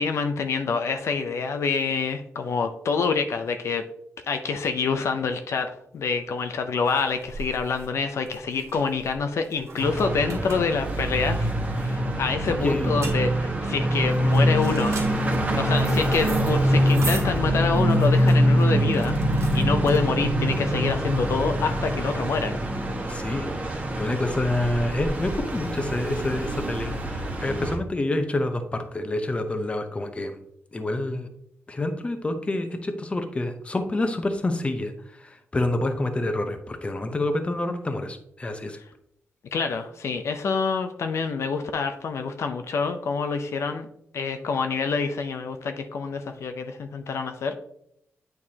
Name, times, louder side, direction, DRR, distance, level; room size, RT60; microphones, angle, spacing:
voice 1, 0.0-3.8 4.2-15.0 15.5-22.6 39.5-43.9 44.1-47.6, left 5 dB, 70° left, 6 dB, 0.5 m, -27 dB
sound 1, 6.0-20.4, right 3 dB, 85° right, 1.9 m, -40 dB
sound 2, 9.8-27.8, equal, 30° right, 1.3 m, -24 dB
voice 2, 12.6-12.9 23.1-30.4 30.7-31.3 31.7-38.8, left 2 dB, 25° left, 7 dB, 0.8 m, -28 dB
8.7 x 4.6 x 2.8 m, 0.74 s
wide cardioid pair, 115°, 5 cm